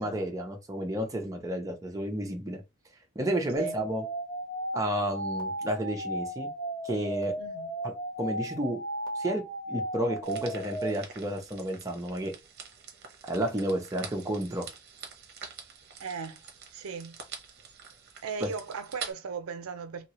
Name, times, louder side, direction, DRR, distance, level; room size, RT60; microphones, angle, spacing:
voice 1, 0.0-2.6 3.2-4.0 4.7-6.5 6.8-7.3 7.8-7.9 8.2-8.8 9.2-12.3 13.3-14.7 18.4-18.5, right 1 dB, 15° right, 0.6 m, -31 dB
sound 1, 3.6-10.9, right 1 dB, 20° left, 1.1 m, -35 dB
voice 2, 7.4-7.7 16.0-16.4 16.7-17.2 18.2-20.1, right 5 dB, 80° right, 0.5 m, -37 dB
sound 2, 10.2-19.1, right 6 dB, 50° right, 0.8 m, -46 dB
2.9 x 2.8 x 2.9 m
head